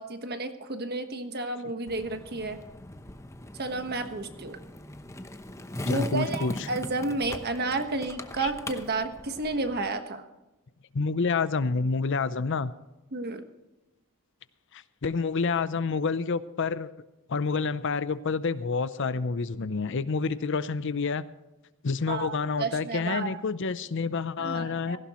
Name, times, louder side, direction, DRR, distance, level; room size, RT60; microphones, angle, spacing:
voice 1, 0.0-2.6 3.5-4.6 5.8-10.2 13.1-13.4 22.1-23.4 24.4-25.0, right 3 dB, 50° right, 7 dB, 1.4 m, -31 dB
Skateboard, 1.9-9.9, left 1 dB, 15° left, 0.8 m, -39 dB
voice 2, 5.9-6.7 8.4-8.5 10.9-12.7 14.7-16.9 17.3-21.2 21.8-25.0, left 4 dB, 60° left, 15 dB, 0.6 m, -28 dB
17.5 x 15.5 x 3.1 m, 1.0 s
head